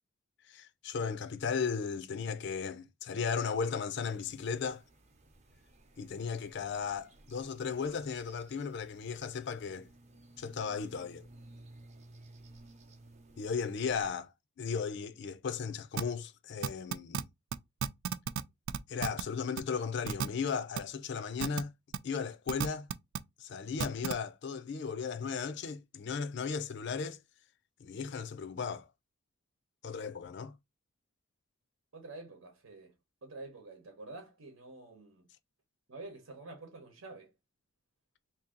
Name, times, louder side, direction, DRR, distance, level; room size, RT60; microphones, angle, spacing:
voice 1, 0.5-4.8 6.0-9.9 10.4-11.2 13.4-14.3 14.6-17.2 18.9-21.7 22.0-22.9 23.4-27.2 27.8-28.9 29.8-30.5, left 5 dB, 55° left, 0.4 m, -36 dB
sound 1, 4.0-14.1, right 2 dB, 35° right, 0.7 m, -57 dB
sound 2, 16.0-16.1 16.6-17.2 17.5-17.6 17.8-18.4 18.7-19.2 19.6-19.7 20.1-20.3 20.8-20.9 21.4-21.6 21.9-22.0 22.5-23.2 23.8-24.1, right 7 dB, 65° right, 0.3 m, -32 dB
voice 2, 31.9-32.9 33.2-35.2 35.9-37.3, right 2 dB, 85° right, 1.0 m, -48 dB
2.8 x 2.7 x 3.8 m
head